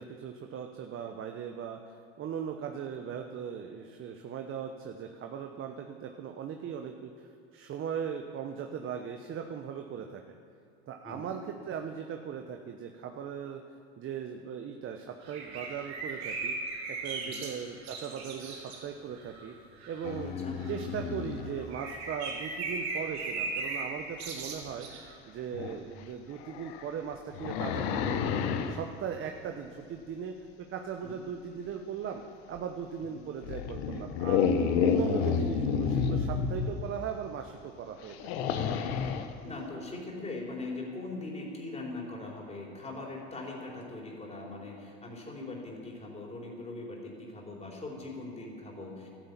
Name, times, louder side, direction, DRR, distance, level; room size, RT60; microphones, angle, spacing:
voice 1, 0.0-10.4 10.9-11.4 11.7-13.6 14.0-16.6 16.9-19.6 19.9-20.3 20.7-24.9 25.3-30.3 30.7-32.2 32.5-34.5 34.8-38.7, right 7 dB, 40° right, 4 dB, 1.1 m, -39 dB
voice 2, 11.0-11.4 17.2-17.4 20.2-20.6 31.0-31.2 33.1-33.2 39.4-49.1, left 2 dB, 20° left, -2 dB, 4.3 m, -41 dB
sound 1, 15.2-18.8 19.1-19.5 19.8-20.2 20.6-21.0 21.4-25.1, right 3 dB, 80° right, 3.2 m, -38 dB
sound 2, 20.0-21.7 24.6-24.7 25.5-25.8 26.4-28.8 32.6-32.7 33.4-36.9 38.0-39.3, left 6 dB, 75° left, 1.2 m, -30 dB
12.5 x 10.5 x 8.4 m, 2.4 s
hypercardioid pair, 95°, 32 cm